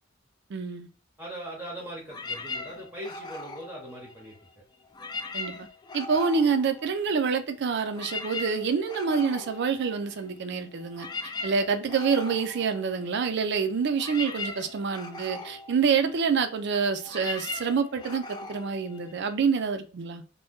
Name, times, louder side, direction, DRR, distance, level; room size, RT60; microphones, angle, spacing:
voice 1, 0.5-0.9 5.3-5.5 5.9-11.1 11.4-20.2, right 5 dB, 60° right, 0.4 m, -27 dB
voice 2, 1.2-4.4, right 1 dB, 10° right, 0.7 m, -40 dB
sound 1, 2.1-4.5 4.9-7.4 7.7-19.6, left 3 dB, 20° left, 0.3 m, -40 dB
2.6 x 2.1 x 3.4 m
head